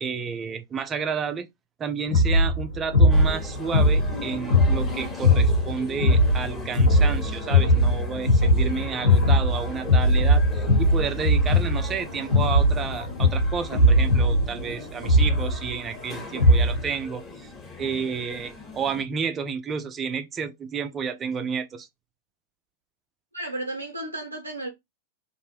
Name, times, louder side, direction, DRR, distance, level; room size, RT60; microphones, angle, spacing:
voice 1, 0.0-1.5 1.8-17.5 17.8-21.9, right 6 dB, 25° right, 0.5 m, -31 dB
sound 1, 2.1-16.9, left 1 dB, 80° left, 1.4 m, -20 dB
sound 2, 3.1-19.0, left 3 dB, 15° left, 1.0 m, -40 dB
voice 2, 23.3-24.7, right 1 dB, 80° right, 0.5 m, -33 dB
2.5 x 2.1 x 3.3 m
figure-of-eight pair, 90°, 0 cm